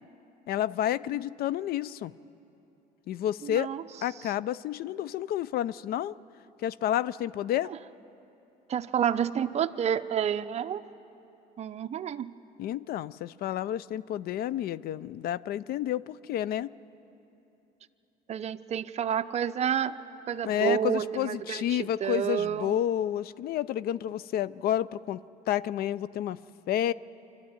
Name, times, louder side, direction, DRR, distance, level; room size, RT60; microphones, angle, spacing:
voice 1, 0.5-2.1 3.1-3.7 4.0-6.1 6.6-7.7 12.6-16.7 20.4-25.2 25.5-26.4 26.7-26.9, left 11 dB, 65° left, 19 dB, 0.5 m, -30 dB
voice 2, 3.4-3.8 7.7-7.8 8.7-10.8 11.6-12.3 18.3-20.0 20.3-22.7, right 9 dB, 40° right, 9 dB, 0.6 m, -29 dB
25.5 x 12.5 x 9.6 m, 2.9 s
cardioid pair, 110°, 17 cm